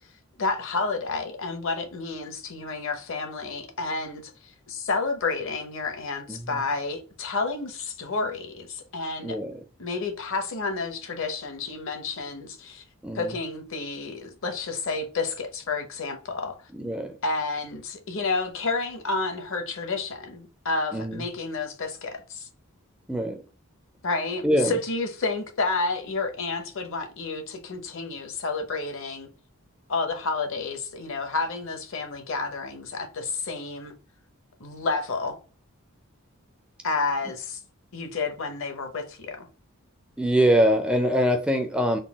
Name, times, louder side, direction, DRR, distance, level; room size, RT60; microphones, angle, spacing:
voice 1, 0.4-9.4 9.8-12.8 13.2-16.6 17.2-22.5 24.0-29.3 29.9-33.9 34.6-35.4 36.8-37.6 37.9-39.4, left 3 dB, 60° left, 0.8 m, -30 dB
voice 2, 6.3-6.6 9.2-9.6 13.0-13.3 16.7-17.2 20.9-21.2 23.1-23.4 24.4-24.8 40.2-42.0, equal, 5° right, 0.3 m, -24 dB
3.8 x 2.2 x 3.5 m
head